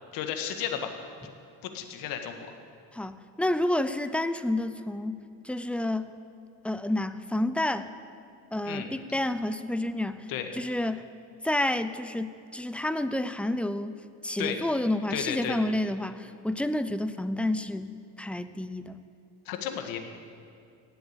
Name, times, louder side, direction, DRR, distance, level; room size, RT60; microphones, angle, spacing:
voice 1, 0.1-0.9 1.2-1.3 1.6-2.6 8.7-8.9 10.3-10.5 14.4-14.6 15.1-15.6 19.5-20.0, left 9 dB, 70° left, 6 dB, 1.8 m, -33 dB
voice 2, 2.9-6.2 6.6-7.9 8.5-11.1 11.4-14.0 14.2-19.0, left 1 dB, 5° left, 12 dB, 0.6 m, -30 dB
17.5 x 7.9 x 8.7 m, 2.4 s
supercardioid pair, 100°, 36 cm